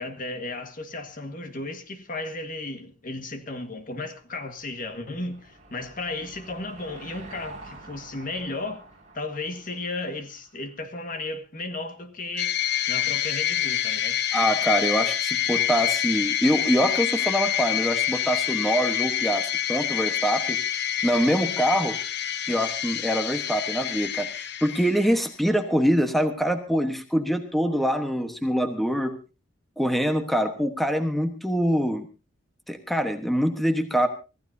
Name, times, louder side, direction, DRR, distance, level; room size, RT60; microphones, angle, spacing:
voice 1, 0.0-8.8 9.1-12.6 12.9-14.2, left 2 dB, 45° left, 7 dB, 1.7 m, -34 dB
Car passing by / Engine, 4.1-10.8, right 2 dB, 35° right, 5.7 m, -48 dB
sound 1, 12.4-25.2, left 10 dB, 60° left, 1.0 m, -27 dB
voice 2, 14.3-20.6 21.0-22.0 22.5-29.1 29.8-32.1 32.7-34.1, equal, ahead, 6 dB, 1.2 m, -24 dB
25.0 x 15.0 x 2.7 m, 0.31 s
head